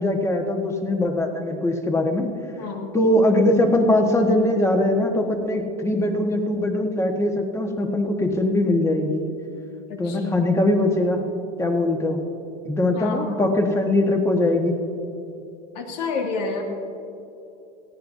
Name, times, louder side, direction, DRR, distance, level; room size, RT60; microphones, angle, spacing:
voice 1, 0.0-2.3 2.9-9.3 10.0-11.2 11.6-12.2 12.6-14.7, left 1 dB, 15° left, 3 dB, 1.4 m, -21 dB
voice 2, 2.6-2.9 10.0-10.4 13.0-13.6 15.7-16.6, left 4 dB, 75° left, 1 dB, 2.3 m, -29 dB
18.0 x 15.0 x 2.7 m, 2.9 s
supercardioid pair, 130°, 21 cm